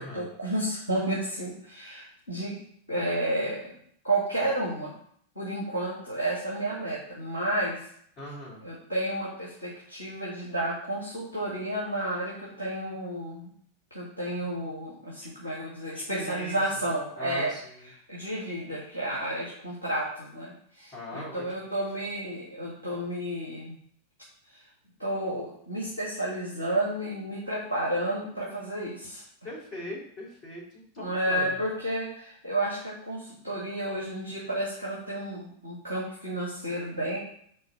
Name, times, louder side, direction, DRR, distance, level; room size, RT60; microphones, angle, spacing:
voice 1, 0.0-2.6 2.9-3.7 4.0-4.9 5.4-7.8 8.6-13.5 13.9-17.5 18.1-23.7 25.0-29.2 31.0-37.2, right 1 dB, 85° left, -6 dB, 1.7 m, -31 dB
voice 2, 8.2-8.6 15.9-16.6 17.2-17.9 20.9-21.4 29.4-31.6, left 1 dB, 30° left, -4 dB, 2.6 m, -40 dB
4.4 x 3.9 x 5.6 m, 0.63 s
figure-of-eight pair, 90°, 0 cm